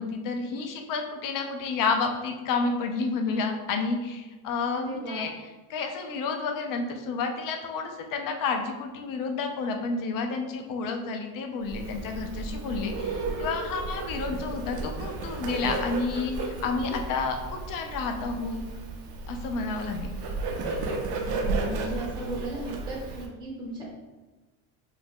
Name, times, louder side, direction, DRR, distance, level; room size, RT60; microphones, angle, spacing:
voice 1, 0.0-5.3 5.7-18.6 19.3-20.1, left 4 dB, 55° left, 4 dB, 0.6 m, -30 dB
voice 2, 4.7-5.3 21.1-23.9, right 2 dB, 10° right, -4 dB, 0.7 m, -36 dB
Bird, 11.6-23.3, right 3 dB, 65° right, 0.6 m, -33 dB
2.5 x 2.2 x 3.4 m, 1.2 s
cardioid pair, 100°, 39 cm